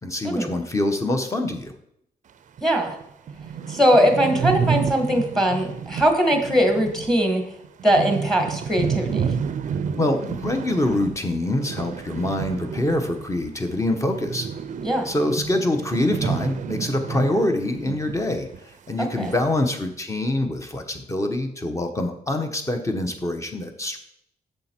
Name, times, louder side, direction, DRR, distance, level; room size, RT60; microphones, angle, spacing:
voice 1, 0.0-1.7 10.0-14.5 15.0-18.5 18.9-24.0, left 1 dB, 20° left, 5 dB, 1.1 m, -25 dB
voice 2, 2.6-2.9 3.7-7.4 7.8-9.3 14.8-15.1 19.0-19.3, equal, ahead, 4 dB, 1.5 m, -20 dB
sound 1, 2.6-2.7 3.0-3.1 3.3-13.5 13.8-18.2 18.5-18.6 19.2-19.7, right 7 dB, 50° right, 0.5 m, -30 dB
7.7 x 6.7 x 4.5 m, 0.73 s
wide cardioid pair, 135°, 16 cm